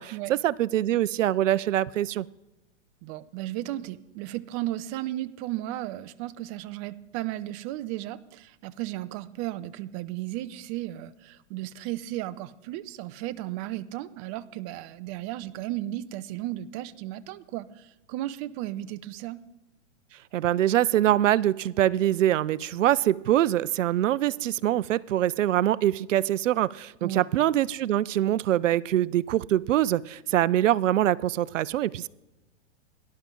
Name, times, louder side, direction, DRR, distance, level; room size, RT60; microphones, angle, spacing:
voice 1, 0.0-2.3 20.3-32.1, right 12 dB, 80° right, 21 dB, 0.5 m, -24 dB
voice 2, 3.0-19.4 27.0-27.2, right 15 dB, 30° right, 14 dB, 0.4 m, -35 dB
18.0 x 11.5 x 3.7 m, 1.0 s
hypercardioid pair, 125°, 37 cm